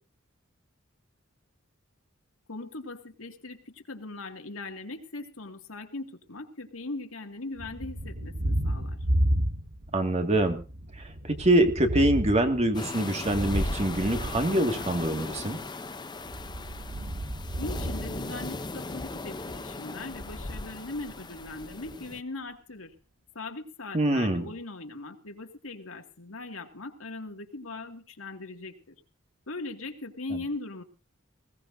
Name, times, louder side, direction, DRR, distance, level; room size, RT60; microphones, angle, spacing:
voice 1, 2.5-9.0 17.6-22.9 23.3-29.0 29.5-30.8, left 2 dB, 85° left, 4 dB, 2.4 m, -39 dB
Thunder, 7.6-10.0 10.3-15.2 16.2-18.9, equal, 65° right, 1.6 m, -32 dB
voice 2, 9.9-10.6 10.9-15.6 23.9-24.5, right 1 dB, 30° right, 5 dB, 2.2 m, -25 dB
sound 1, 12.7-22.2, left 3 dB, 20° left, 0.8 m, -38 dB
20.5 x 17.5 x 2.7 m, 0.34 s
head